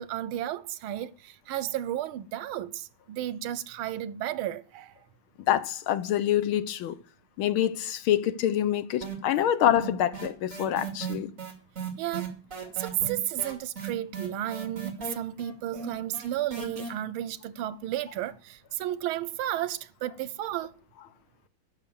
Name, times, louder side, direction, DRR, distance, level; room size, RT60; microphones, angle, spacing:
voice 1, 0.0-4.9 12.0-12.3 12.8-20.7, right 12 dB, 90° right, 1.5 m, -33 dB
voice 2, 5.5-7.0 7.4-11.3, left 11 dB, 80° left, 1.6 m, -26 dB
MS Gate low, 9.0-9.5 9.8-16.9, right 6 dB, 40° right, 3.0 m, -36 dB
10.5 x 6.1 x 7.1 m
omnidirectional pair, 2.3 m